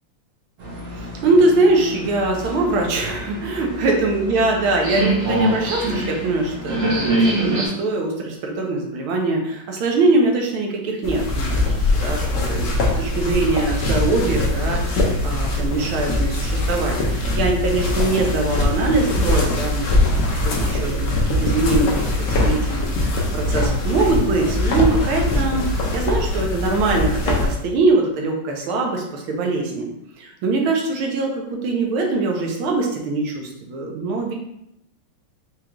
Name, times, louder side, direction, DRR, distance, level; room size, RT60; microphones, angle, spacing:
sound 1, 0.6-7.7, right 1 dB, 65° right, 1.7 m, -25 dB
voice 1, 0.9-11.5 12.0-12.7 13.0-25.6 25.9-29.9 30.2-34.3, right 3 dB, 80° right, 1 dB, 1.6 m, -22 dB
sound 2, 11.0-27.5, left 1 dB, 80° left, 0.6 m, -22 dB
4.9 x 2.4 x 2.9 m, 0.78 s
omnidirectional pair, 2.3 m